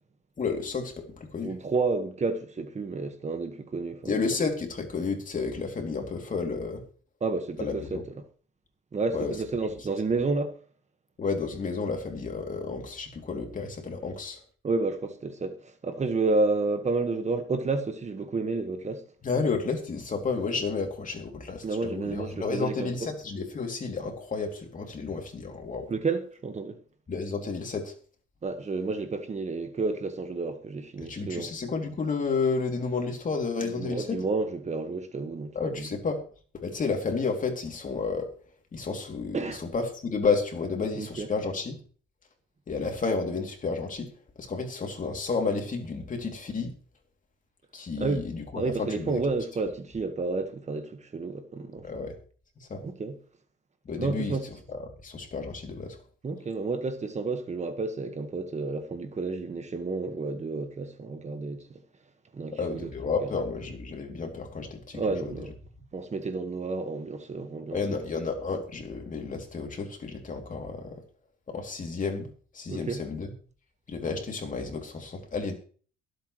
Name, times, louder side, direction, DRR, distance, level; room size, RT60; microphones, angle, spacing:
voice 1, 0.4-1.6 4.1-6.8 7.6-8.0 9.1-9.3 11.2-14.4 19.2-25.9 27.1-27.9 31.1-34.2 35.5-36.2 36.6-38.3 38.7-41.8 42.7-46.7 47.7-49.2 51.8-52.2 52.7-52.8 53.8-54.4 54.7-56.0 62.5-65.3 67.7-71.0 71.5-73.3 73.9-75.5, left 4 dB, 40° left, 3.0 m, -31 dB
voice 2, 1.4-4.2 7.2-8.2 8.9-10.5 14.6-19.0 21.6-22.9 25.9-26.8 28.4-31.5 33.6-35.9 39.3-39.6 41.0-41.3 48.0-48.2 48.5-51.9 52.8-53.2 54.0-54.4 56.2-61.7 62.3-62.9 63.2-63.3 64.9-65.5 65.9-67.8 72.7-73.0, right 3 dB, 35° right, 1.6 m, -30 dB
23.0 x 8.1 x 3.2 m
cardioid pair, 90°, 20 cm